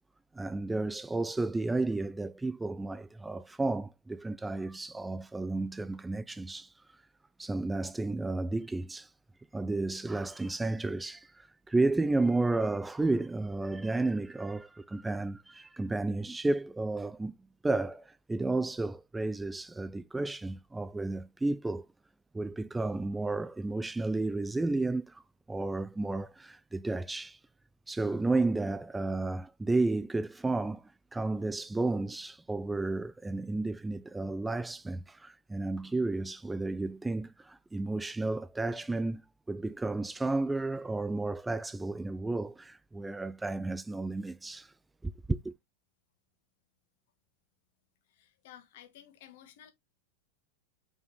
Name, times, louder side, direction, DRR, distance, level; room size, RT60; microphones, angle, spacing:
voice 1, 0.3-6.7 7.4-9.1 9.5-17.4 17.6-21.9 22.3-25.2 25.5-27.4 27.9-39.2 39.5-44.7 45.0-45.5, right 2 dB, 10° right, 0.3 m, -32 dB
voice 2, 48.1-49.7, left 11 dB, 50° left, 1.8 m, -54 dB
6.2 x 5.7 x 3.1 m
figure-of-eight pair, 90°, 0 cm